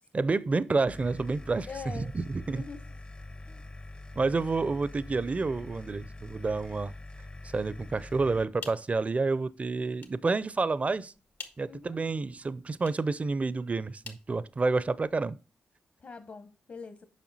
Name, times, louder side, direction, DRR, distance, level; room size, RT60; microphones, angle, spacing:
voice 1, 0.1-1.7 1.9-2.6 4.1-6.9 7.5-11.1 11.6-15.4, right 3 dB, 40° right, 0.5 m, -29 dB
sound 1, 0.9-8.4, left 2 dB, 25° left, 0.6 m, -44 dB
voice 2, 1.6-2.1 2.5-2.9 3.5-3.7 11.7-12.0 16.0-17.0, left 5 dB, 55° left, 1.0 m, -44 dB
sound 2, 8.3-15.1, left 5 dB, 80° left, 1.3 m, -51 dB
7.4 x 5.5 x 4.1 m
cardioid pair, 50°, 4 cm